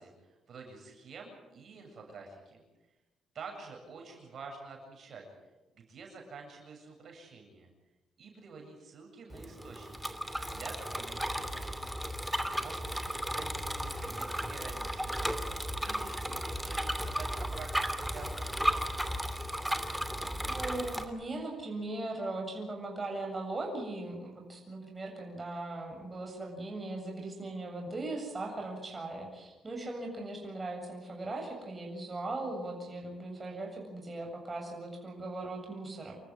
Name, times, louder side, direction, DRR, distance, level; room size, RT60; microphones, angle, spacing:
voice 1, 0.0-2.6 3.3-5.2 5.7-7.7 8.2-10.2 10.5-11.9 12.6-15.4 15.8-18.6, right 4 dB, 55° right, 1 dB, 7.7 m, -48 dB
Bicycle, 9.3-21.0, equal, 5° right, 2.7 m, -35 dB
voice 2, 20.3-36.2, right 2 dB, 25° right, 1 dB, 7.6 m, -39 dB
28.0 x 14.0 x 10.0 m, 1.1 s
cardioid pair, 90°, 0 cm